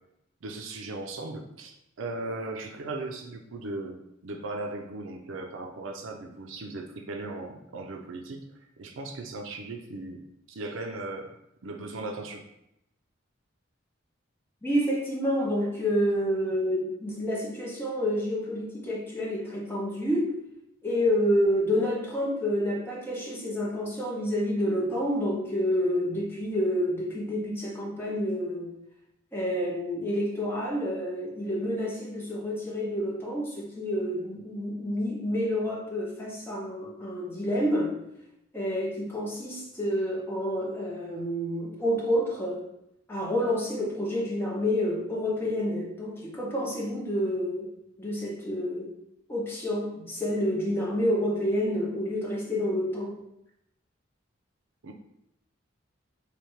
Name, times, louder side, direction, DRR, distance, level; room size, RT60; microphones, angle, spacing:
voice 1, 0.4-4.0 4.2-8.5 8.8-10.2 10.5-11.3 11.6-12.5 54.8-54.9, right 2 dB, 75° right, 3 dB, 0.5 m, -37 dB
voice 2, 14.6-20.4 20.8-28.7 29.3-38.0 38.5-42.6 43.1-47.7 48.0-48.9 49.3-53.2, equal, 10° left, -4 dB, 0.8 m, -28 dB
3.2 x 2.8 x 4.5 m, 0.82 s
head